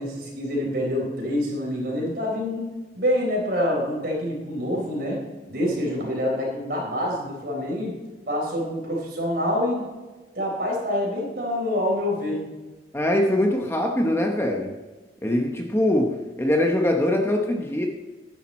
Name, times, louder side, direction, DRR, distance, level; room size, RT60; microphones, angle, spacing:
voice 1, 0.0-2.7 2.9-8.0 8.3-9.9 10.3-12.4, left 1 dB, 55° right, -2 dB, 4.4 m, -26 dB
voice 2, 12.9-14.7 15.2-17.9, left 1 dB, 15° left, 2 dB, 0.9 m, -22 dB
10.5 x 10.5 x 4.2 m, 1.2 s
head